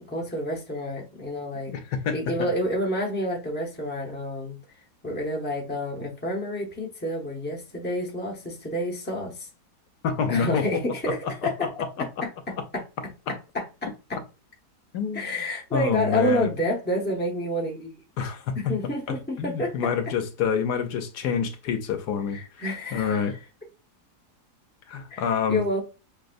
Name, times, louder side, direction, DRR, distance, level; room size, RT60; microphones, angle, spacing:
voice 1, 0.0-1.7 2.1-4.6 5.0-9.5 10.3-11.7 12.7-12.8 13.3-14.2 15.1-18.0 18.5-19.7 22.3-23.4 25.1-25.8, left 1 dB, 10° left, 0.7 m, -29 dB
voice 2, 1.7-2.5 10.0-10.7 11.0-12.1 14.9-15.3 15.7-16.5 18.2-18.5 19.1-22.4 22.9-23.3 24.9-25.6, left 6 dB, 80° left, 1.2 m, -27 dB
5.9 x 2.3 x 2.5 m
omnidirectional pair, 1.8 m